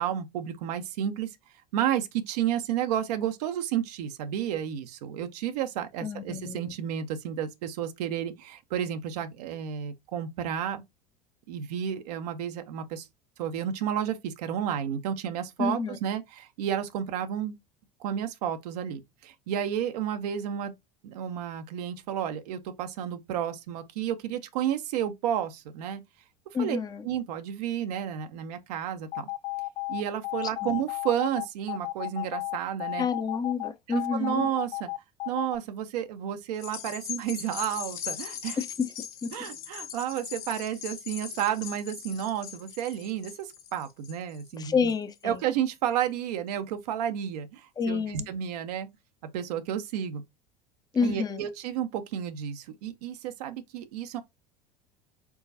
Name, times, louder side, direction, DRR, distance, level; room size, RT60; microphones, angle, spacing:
voice 1, 0.0-1.4 1.7-10.8 11.5-13.1 13.4-17.5 18.0-20.7 21.0-26.0 26.6-29.3 29.9-33.1 33.9-34.9 35.3-38.6 39.3-44.9 45.2-48.9 49.3-50.2 51.0-54.2, right 10 dB, 70° right, 0.7 m, -31 dB
voice 2, 6.0-6.6 15.6-16.0 26.5-27.0 30.6-30.7 33.0-34.5 38.6-38.7 39.2-39.3 44.6-45.4 47.8-48.3 50.9-51.5, left 5 dB, 20° left, 0.6 m, -29 dB
sound 1, 29.0-35.6, left 23 dB, 65° left, 0.6 m, -33 dB
sound 2, 36.5-45.2 45.7-45.8, left 9 dB, 45° left, 1.3 m, -40 dB
4.7 x 3.8 x 2.6 m
hypercardioid pair, 75°, 21 cm